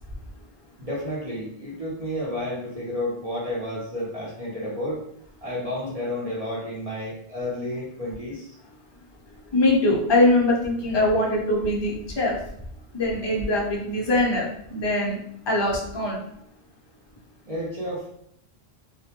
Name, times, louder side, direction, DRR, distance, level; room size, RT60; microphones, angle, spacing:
voice 1, 0.8-5.0 5.4-8.5 17.5-18.1, left 1 dB, 40° right, -7 dB, 0.6 m, -31 dB
voice 2, 9.5-12.3 12.9-15.2 15.5-16.2, left 1 dB, 35° left, -2 dB, 0.4 m, -22 dB
2.1 x 2.1 x 2.8 m, 0.71 s
omnidirectional pair, 1.1 m